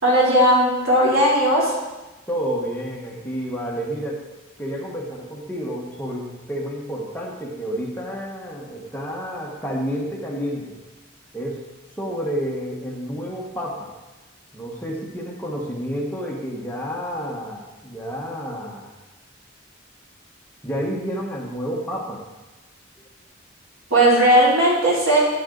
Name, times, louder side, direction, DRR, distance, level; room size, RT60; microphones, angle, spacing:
voice 1, 0.0-1.7 23.9-25.2, right 1 dB, 80° right, -5 dB, 3.2 m, -17 dB
voice 2, 2.3-4.2 4.6-10.7 11.3-11.7 12.0-13.9 14.5-18.9 20.6-22.2, equal, 10° left, -3 dB, 1.3 m, -30 dB
10.5 x 7.8 x 3.9 m, 1.1 s
head